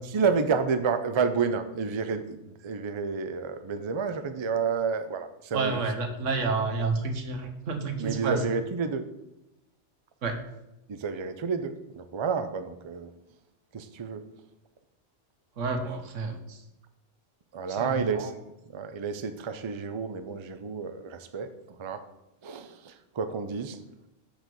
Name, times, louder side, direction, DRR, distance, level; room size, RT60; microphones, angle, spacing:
voice 1, 0.1-5.8 8.0-9.1 10.9-13.1 13.7-14.2 17.5-18.3 18.7-22.0 22.4-23.8, right 5 dB, 35° right, 9 dB, 0.4 m, -30 dB
voice 2, 5.5-8.4 10.2-10.4 15.6-16.6 17.7-18.3, right 4 dB, 90° right, 6 dB, 1.4 m, -30 dB
6.3 x 5.0 x 6.8 m, 0.91 s
omnidirectional pair, 1.2 m